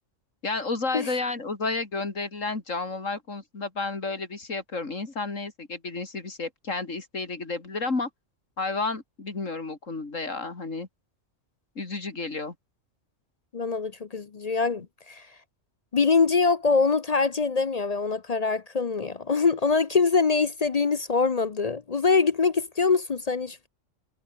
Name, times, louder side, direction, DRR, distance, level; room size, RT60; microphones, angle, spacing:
voice 1, 0.4-8.1 8.6-10.9 11.8-12.5, left 3 dB, 80° left, 3.6 m, -31 dB
voice 2, 13.5-15.2 15.9-23.7, left 4 dB, 40° left, 0.6 m, -24 dB
omnidirectional pair, 1.3 m